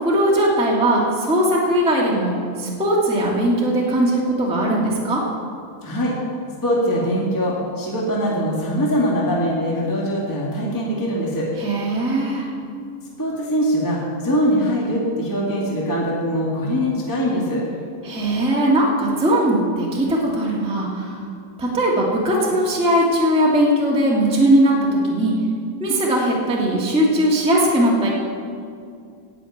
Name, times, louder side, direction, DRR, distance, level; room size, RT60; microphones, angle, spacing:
voice 1, 0.0-5.2 11.6-12.5 18.0-21.2 21.6-25.3 25.8-28.1, right 1 dB, 10° right, -4 dB, 0.3 m, -19 dB
voice 2, 5.8-6.1 6.6-11.5 13.2-17.6, equal, 10° left, -5 dB, 0.9 m, -22 dB
12.0 x 6.6 x 9.1 m, 2.3 s
omnidirectional pair, 4.1 m